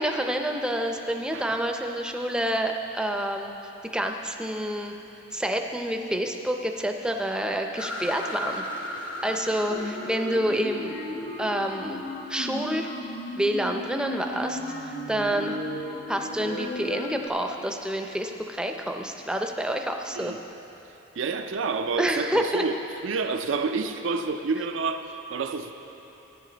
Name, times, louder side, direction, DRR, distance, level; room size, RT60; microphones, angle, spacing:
voice 1, 0.0-3.5 3.9-4.9 5.3-8.6 9.2-10.9 11.4-12.0 12.3-12.9 13.4-15.6 16.1-20.3 22.0-22.6, right 1 dB, 5° right, 4 dB, 0.5 m, -28 dB
sound 1, 7.8-12.3, left 1 dB, 70° left, 1.1 m, -37 dB
sound 2, 9.7-17.3, left 1 dB, 40° left, 0.7 m, -35 dB
voice 2, 21.2-22.8 23.0-25.7, right 4 dB, 75° right, 7 dB, 0.5 m, -28 dB
13.5 x 9.7 x 3.9 m, 2.9 s
head